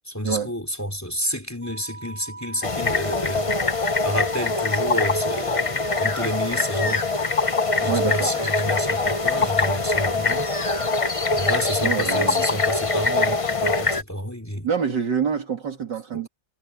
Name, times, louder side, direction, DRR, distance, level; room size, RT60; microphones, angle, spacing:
voice 1, 0.1-3.5 4.0-7.1 7.8-10.5 11.3-14.7 16.1-16.3, equal, 10° left, 3.8 m, -29 dB
Wind instrument woodwind instrument, 1.6-11.5, right 3 dB, 40° right, 3.0 m, -40 dB
sound 1, 2.6-14.0, left 3 dB, 30° left, 0.6 m, -23 dB
voice 2, 7.8-8.3 11.8-12.4 14.6-16.3, right 6 dB, 65° right, 3.0 m, -26 dB
omnidirectional pair, 2.1 m